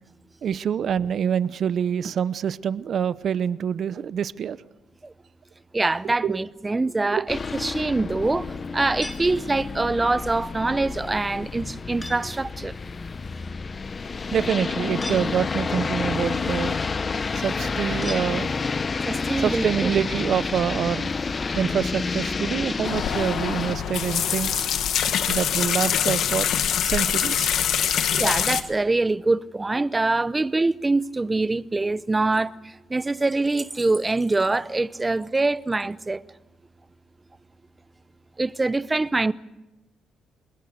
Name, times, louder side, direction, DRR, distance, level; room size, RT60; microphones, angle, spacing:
voice 1, 0.4-4.6 6.2-6.4 7.1-7.3 14.3-16.8 17.4-18.5 19.4-21.1 21.6-24.7 25.3-26.5 26.8-27.6 28.0-28.2, right 8 dB, 60° right, 0.8 m, -26 dB
voice 2, 5.7-8.5 8.7-12.7 19.0-19.9 28.2-36.2 38.4-39.3, right 2 dB, 20° right, 0.7 m, -24 dB
sound 1, 7.3-23.7, left 4 dB, 35° left, 0.8 m, -29 dB
sound 2, 9.0-10.0 12.0-12.5 15.0-15.8 18.0-18.9, left 1 dB, 15° left, 3.3 m, -40 dB
sound 3, 22.8-28.6, left 9 dB, 70° left, 1.4 m, -24 dB
26.5 x 21.0 x 6.6 m
cardioid pair, 90°, 0 cm